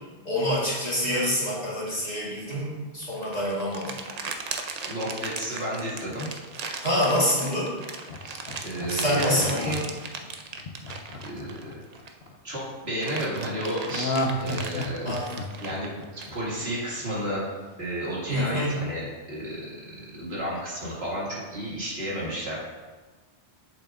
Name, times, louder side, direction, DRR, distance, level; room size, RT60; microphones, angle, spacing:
voice 1, 0.3-4.0 6.8-7.7 8.9-9.8 15.0-15.3 18.3-18.8, equal, 40° left, -7 dB, 2.1 m, -26 dB
sound 1, 3.0-12.3 12.7-16.8, right 4 dB, 50° right, 0.5 m, -37 dB
voice 2, 4.9-6.3 8.2-9.8 11.2-11.8 12.4-15.1 15.6-17.4 17.8-19.6 20.2-22.6, equal, 65° right, -7 dB, 2.3 m, -32 dB
Laughter, 8.1-12.3 13.9-16.9 17.2-17.3, left 1 dB, 65° left, 0.9 m, -32 dB
8.2 x 7.0 x 2.5 m, 1.3 s
omnidirectional pair, 1.1 m